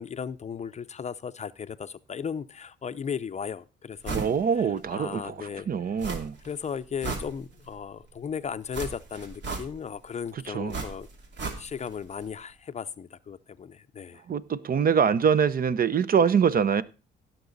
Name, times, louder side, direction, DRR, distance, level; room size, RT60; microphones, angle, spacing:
voice 1, 0.0-4.2 4.6-4.7 4.9-5.7 6.4-11.1 11.6-14.2, left 7 dB, 35° left, 0.5 m, -36 dB
sound 1, 4.0-4.4 4.8-4.9 6.0-6.5 6.8-7.8 8.7-10.0 10.7-12.0 12.2-12.3, right 4 dB, 65° right, 2.7 m, -35 dB
voice 2, 4.1-6.3 10.5-10.8 14.3-16.8, right 7 dB, 45° right, 0.7 m, -24 dB
16.5 x 6.0 x 4.0 m
cardioid pair, 90°, 20 cm